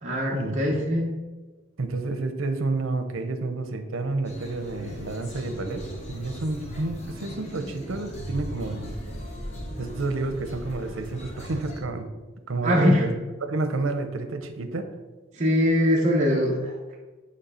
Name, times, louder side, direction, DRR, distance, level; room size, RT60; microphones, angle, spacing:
voice 1, 0.0-1.1 12.6-13.0 15.4-17.0, equal, 35° right, -4 dB, 0.9 m, -22 dB
voice 2, 1.8-5.8 6.1-8.9 9.8-12.1 12.5-13.1 13.4-14.9, right 2 dB, 90° right, 8 dB, 0.8 m, -30 dB
sound 1, 4.2-11.8, equal, 35° left, 1.1 m, -38 dB
8.4 x 3.3 x 5.6 m, 1.2 s
head